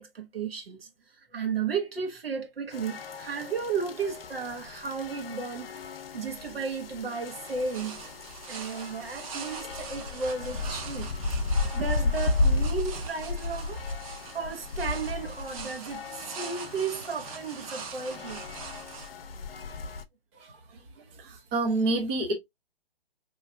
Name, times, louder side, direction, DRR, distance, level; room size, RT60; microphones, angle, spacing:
voice 1, 0.0-8.1 8.5-11.1 11.7-13.8 14.3-18.4 20.7-20.9, right 5 dB, 75° right, 1.4 m, -34 dB
sound 1, 2.7-20.0, left 3 dB, 75° left, 0.7 m, -34 dB
sound 2, 7.2-19.1, right 5 dB, 35° right, 0.8 m, -43 dB
voice 2, 21.2-22.3, right 2 dB, 15° right, 0.4 m, -27 dB
4.5 x 3.1 x 2.5 m
figure-of-eight pair, 140°, 30 cm